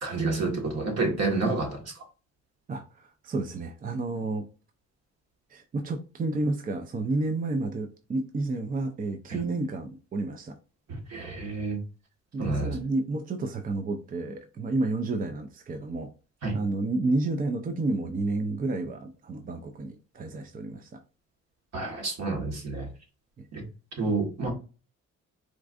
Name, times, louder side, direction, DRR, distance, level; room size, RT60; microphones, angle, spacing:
voice 1, 0.0-1.9 9.3-9.4 10.9-11.8 12.4-12.7 16.4-16.6 21.7-22.9 23.5-23.6 24.0-24.5, right 3 dB, 60° right, 1.5 m, -29 dB
voice 2, 2.7-4.4 5.5-10.6 12.3-16.1 16.5-21.0 23.4-23.5, right 2 dB, 30° right, 0.5 m, -30 dB
4.4 x 2.5 x 2.5 m
cardioid pair, 90°, 30 cm